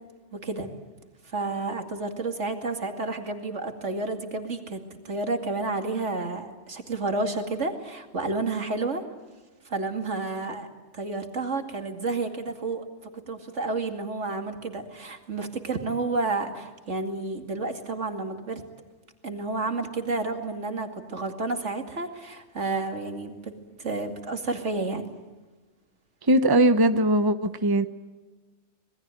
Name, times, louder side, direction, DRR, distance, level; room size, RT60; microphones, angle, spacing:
voice 1, 0.3-0.7 1.2-4.8 5.0-9.0 9.6-10.7 10.9-12.8 13.3-18.6 19.2-23.5 23.8-25.1, right 3 dB, 75° right, 5 dB, 2.7 m, -30 dB
voice 2, 26.3-27.9, right 1 dB, 20° right, 10 dB, 0.9 m, -20 dB
26.5 x 20.5 x 9.1 m, 1.2 s
omnidirectional pair, 1.2 m